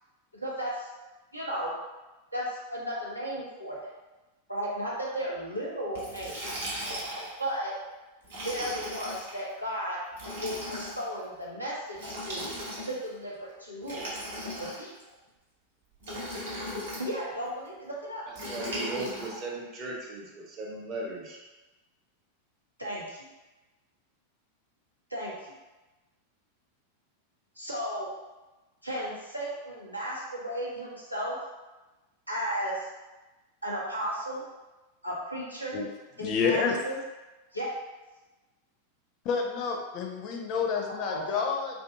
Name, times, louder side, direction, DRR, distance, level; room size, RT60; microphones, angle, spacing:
voice 1, 0.3-0.9 1.3-1.7 2.3-3.9 4.5-6.4 7.4-7.7 8.4-10.0 10.4-12.5 12.8-14.0 14.6-14.9 17.0-18.3 22.8-23.3 25.1-25.5 27.6-28.1 28.8-31.4 32.3-32.9 33.6-34.4 35.0-35.8 36.2-37.0 37.5-37.7 41.1-41.4, equal, 90° right, -5 dB, 0.6 m, -34 dB
Liquid, 6.0-7.4 8.2-9.3 10.1-11.0 11.9-13.1 13.8-15.0 16.0-17.1 18.4-19.4, equal, 65° right, 0.9 m, -37 dB
voice 2, 18.5-21.4, right 2 dB, 35° right, -3 dB, 0.7 m, -37 dB
voice 3, 36.2-36.8 39.2-41.8, left 5 dB, 40° left, 1 dB, 0.4 m, -29 dB
2.6 x 2.5 x 2.3 m, 1.1 s
figure-of-eight pair, 90°, 0 cm